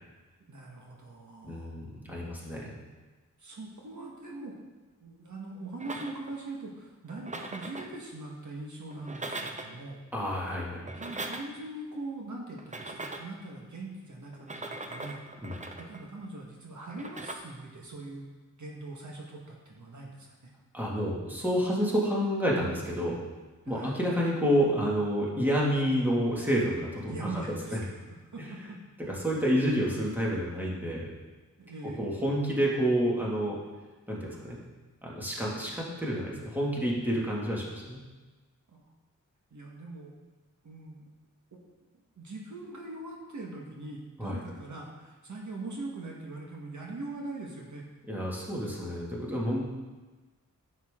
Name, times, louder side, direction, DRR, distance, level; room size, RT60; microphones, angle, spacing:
voice 1, 0.5-1.7 2.3-2.5 3.4-4.5 5.0-10.0 10.9-15.2 15.8-18.3 18.6-20.3 23.6-24.0 27.1-28.0 28.3-28.8 30.6-30.7 31.6-32.1 38.7-38.8 39.5-40.1 40.6-41.1 41.5-41.6 42.2-47.9, right 2 dB, 65° right, -1 dB, 1.5 m, -42 dB
voice 2, 1.4-2.8 10.1-10.9 15.4-15.6 20.7-23.2 23.7-27.8 28.4-28.7 29.0-31.1 31.8-33.6 34.1-34.6 35.0-38.0 44.2-44.4 48.1-49.6, equal, 5° right, -5 dB, 2.1 m, -29 dB
sound 1, 5.8-6.4 7.1-8.0 8.9-9.8 10.7-11.7 12.6-13.4 14.3-16.1 16.9-17.3, right 2 dB, 20° right, 0.7 m, -40 dB
10.5 x 7.2 x 3.7 m, 1.3 s
wide cardioid pair, 95°, 32 cm